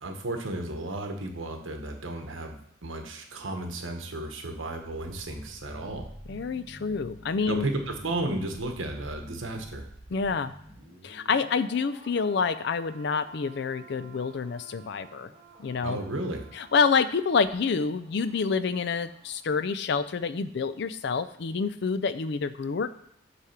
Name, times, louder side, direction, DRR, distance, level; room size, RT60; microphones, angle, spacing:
voice 1, 0.0-6.1 7.5-9.9 15.8-16.5, right 2 dB, 80° right, 4 dB, 1.2 m, -33 dB
sound 1, 4.6-19.4 19.7-19.9, right 1 dB, 45° right, 2.5 m, -50 dB
voice 2, 6.3-7.7 10.1-10.5 11.0-15.3 15.6-16.0 16.6-22.9, left 5 dB, 60° left, 14 dB, 0.4 m, -27 dB
8.2 x 3.4 x 5.7 m, 0.69 s
head